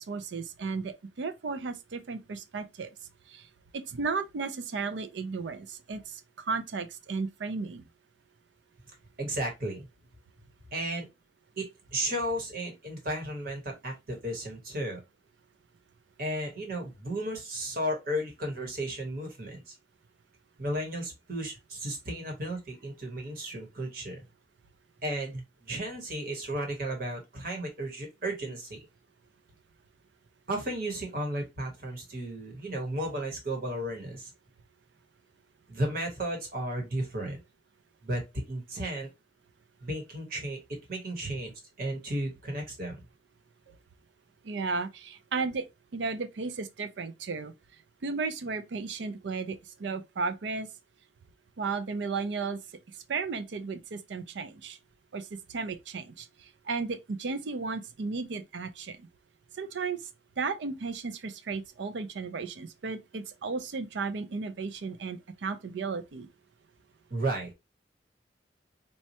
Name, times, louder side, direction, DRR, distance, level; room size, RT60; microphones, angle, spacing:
voice 1, 0.0-2.9 3.3-3.5 3.7-7.8 41.2-41.3 44.4-45.6 45.9-47.5 48.0-50.7 51.6-52.6 53.1-54.8 55.1-56.3 56.7-59.1 59.6-60.0 60.4-66.3, right 4 dB, 75° right, 0.5 m, -34 dB
voice 2, 9.2-9.9 10.7-11.1 11.6-15.0 16.2-19.7 20.6-24.2 25.0-28.8 30.5-34.3 35.7-37.4 38.0-39.1 39.8-41.5 41.8-43.0 67.1-67.5, right 1 dB, 55° right, 1.1 m, -34 dB
4.2 x 2.3 x 2.7 m
head